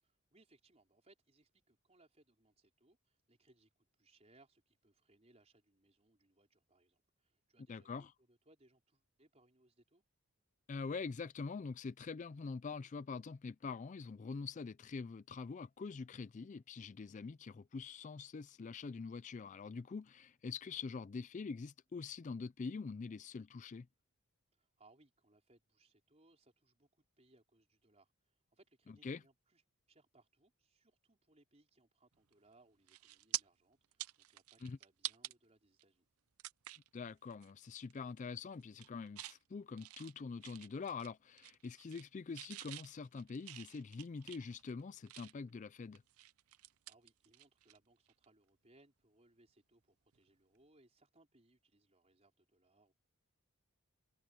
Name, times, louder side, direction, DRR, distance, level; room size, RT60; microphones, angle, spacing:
voice 1, 0.0-10.0 24.5-29.6 29.9-36.1 46.8-52.9, right 2 dB, 30° right, 4.6 m, -70 dB
voice 2, 7.7-8.1 10.7-23.9 29.0-29.2 34.6-34.8 36.9-46.0, left 4 dB, 35° left, 0.3 m, -45 dB
sound 1, 32.3-32.5 32.9-33.4 33.8-35.3 35.8-35.9 36.4-36.9 37.3-37.5 37.8-38.3 38.6-39.4 39.8-41.1 41.4-42.1 42.3-45.5 45.9-47.8 48.1-48.3 50.1-50.3, right 16 dB, 80° right, 0.6 m, -47 dB
head